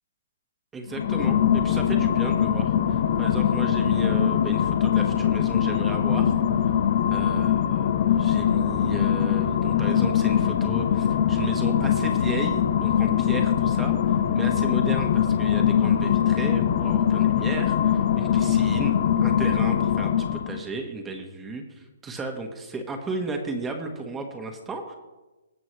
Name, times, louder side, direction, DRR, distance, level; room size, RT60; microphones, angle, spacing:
voice 1, 0.7-6.3 7.1-24.9, right 3 dB, 15° right, 4 dB, 1.3 m, -34 dB
sound 1, 0.9-20.6, left 9 dB, 55° left, 0.7 m, -22 dB
19.0 x 6.9 x 3.2 m, 1.1 s
hypercardioid pair, 140°, 0 cm